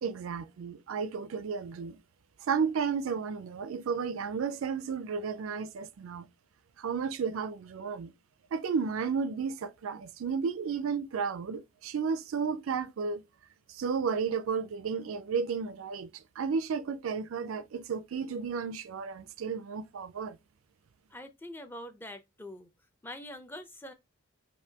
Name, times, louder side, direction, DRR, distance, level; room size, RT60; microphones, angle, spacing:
voice 1, 0.0-2.0 2.5-6.3 6.8-8.1 8.5-13.2 13.7-20.4, right 6 dB, 70° right, 0.4 m, -33 dB
voice 2, 21.1-22.7 23.0-23.9, left 1 dB, 10° left, 0.5 m, -44 dB
5.3 x 2.6 x 2.8 m
head